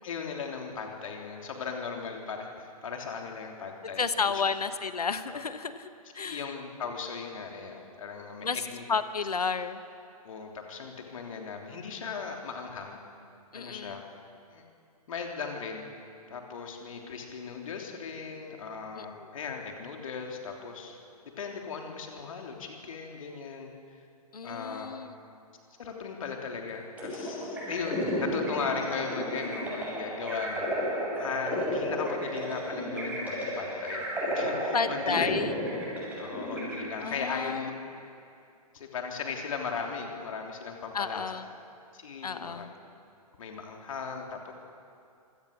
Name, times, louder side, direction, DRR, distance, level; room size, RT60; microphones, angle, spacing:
voice 1, 0.0-4.3 5.3-5.4 6.2-8.8 10.2-13.0 13.5-14.0 14.5-14.6 15.1-15.9 16.3-21.0 21.2-23.7 24.4-24.9 25.8-34.1 34.3-35.7 36.2-37.7 38.7-41.2 41.9-42.7 43.4-44.5, left 5 dB, 55° left, 2 dB, 3.2 m, -37 dB
voice 2, 4.0-6.5 8.4-9.8 13.5-14.0 19.0-19.3 24.3-25.2 34.7-35.5 37.0-37.7 40.9-41.5 42.2-42.7, left 5 dB, 75° left, 12 dB, 1.2 m, -32 dB
sound 1, 27.0-37.4, equal, 10° right, 7.4 m, -33 dB
24.5 x 17.5 x 6.7 m, 2.5 s
figure-of-eight pair, 120°, 20 cm